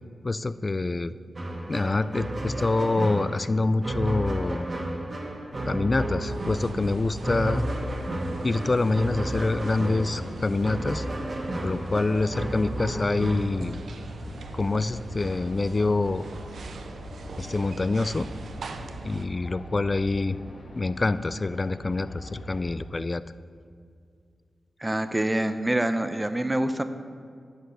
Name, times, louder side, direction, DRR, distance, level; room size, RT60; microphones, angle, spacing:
voice 1, 0.2-1.1 1.7-4.7 5.6-7.7 8.4-11.1 11.6-13.8 14.5-16.3 17.4-18.3 18.8-20.4 20.7-23.2, left 3 dB, 40° left, 15 dB, 0.4 m, -26 dB
sound 1, 1.4-13.5, right 1 dB, 40° right, 1.5 m, -32 dB
sound 2, 5.8-22.7, left 2 dB, 60° left, 1.6 m, -43 dB
sound 3, 6.2-19.3, right 4 dB, 75° right, 0.5 m, -42 dB
voice 2, 24.8-26.8, right 1 dB, 20° right, 10 dB, 0.7 m, -26 dB
10.0 x 5.3 x 6.5 m, 2.2 s
cardioid pair, 45°, 0 cm